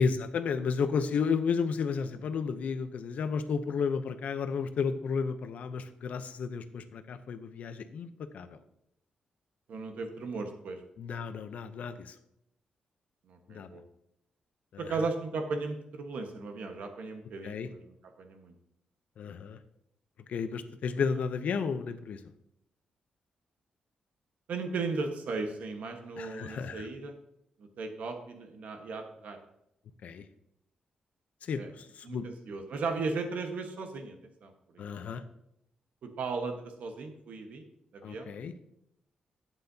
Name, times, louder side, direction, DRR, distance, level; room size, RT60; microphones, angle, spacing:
voice 1, 0.0-8.6 11.0-12.1 13.5-13.7 14.7-14.9 17.4-17.7 19.2-19.6 20.3-22.2 26.2-26.9 30.0-30.2 31.4-32.3 34.8-35.2 38.0-38.5, left 5 dB, 65° left, 10 dB, 0.7 m, -32 dB
voice 2, 9.7-10.8 13.3-13.8 14.8-18.5 24.5-27.2 27.6-29.4 31.5-31.7 32.0-34.8 36.0-37.6 37.9-38.3, right 4 dB, 70° right, 5 dB, 1.3 m, -36 dB
11.5 x 9.0 x 2.8 m, 0.80 s
wide cardioid pair, 140°, 3 cm